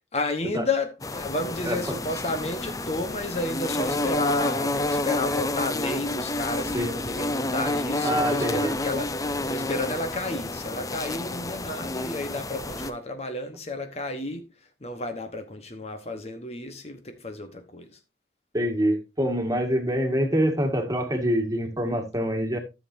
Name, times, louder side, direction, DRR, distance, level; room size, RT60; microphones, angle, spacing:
voice 1, 0.1-9.1 9.5-14.5 14.8-18.0, left 2 dB, 35° left, 1.1 m, -31 dB
sound 1, 1.0-12.9, left 2 dB, 20° left, 0.6 m, -29 dB
voice 2, 1.7-2.0 6.7-6.9 8.0-8.7 18.5-22.6, equal, 20° right, 1.9 m, -25 dB
13.5 x 7.3 x 2.6 m
head